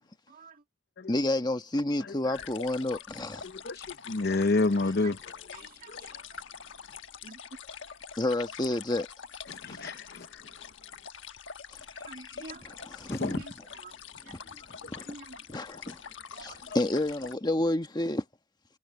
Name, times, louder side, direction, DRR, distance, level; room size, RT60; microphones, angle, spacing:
voice 1, 0.3-0.6 5.5-6.2 7.2-7.4 12.1-12.7 13.4-13.5 13.8-13.9 14.3-14.6 15.1-15.4 16.3-16.7, right 3 dB, 50° right, 2.1 m, -48 dB
voice 2, 1.1-3.4 8.1-9.1 12.0-13.4 14.3-14.4 14.9-15.1 15.5-16.0 16.4-18.2, left 1 dB, 20° left, 1.2 m, -30 dB
voice 3, 2.0-2.5 3.4-5.2 5.9-6.0 9.5-10.7 13.1-13.4 14.8-14.9 16.7-16.8, left 3 dB, 55° left, 0.8 m, -30 dB
sound 1, 2.3-17.4, left 7 dB, 80° left, 1.2 m, -45 dB
head